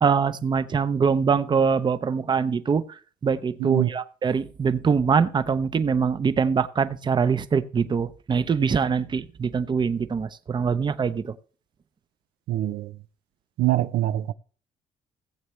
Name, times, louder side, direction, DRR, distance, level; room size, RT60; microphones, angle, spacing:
voice 1, 0.0-11.4, right 6 dB, 30° right, 0.6 m, -23 dB
voice 2, 12.5-12.9 13.6-14.3, right 14 dB, 90° right, 0.5 m, -24 dB
17.5 x 7.9 x 3.1 m
cardioid pair, 125°, 16 cm